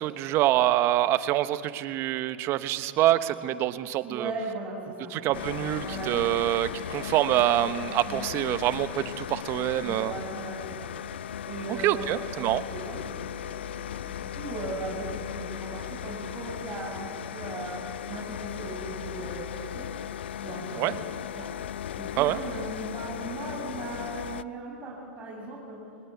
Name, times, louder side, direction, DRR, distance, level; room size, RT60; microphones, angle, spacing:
voice 1, 0.0-4.3 5.1-10.1 11.7-12.6 20.8-21.0 22.2-22.4, right 14 dB, 45° right, 13 dB, 1.1 m, -26 dB
voice 2, 4.0-6.4 8.0-8.2 9.8-10.9 11.5-17.8 18.1-19.9 20.4-21.0 21.4-21.5 21.9-25.8, right 2 dB, 25° right, -6 dB, 7.0 m, -38 dB
sound 1, 5.3-24.4, left 9 dB, 75° left, 0.5 m, -37 dB
22.5 x 20.5 x 8.3 m, 2.5 s
hypercardioid pair, 95°, 6 cm